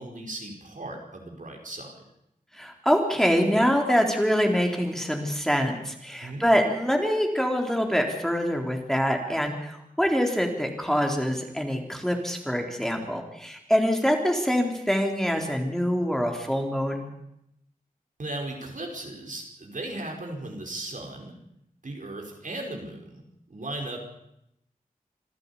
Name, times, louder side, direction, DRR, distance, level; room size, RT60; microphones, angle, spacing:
voice 1, 0.0-1.9 6.2-6.4 18.2-21.3 21.8-24.0, right 2 dB, 65° right, 1 dB, 5.0 m, -37 dB
voice 2, 2.5-17.1, equal, 5° left, 2 dB, 3.7 m, -25 dB
26.5 x 12.0 x 8.5 m, 0.81 s
wide cardioid pair, 50°, 15 cm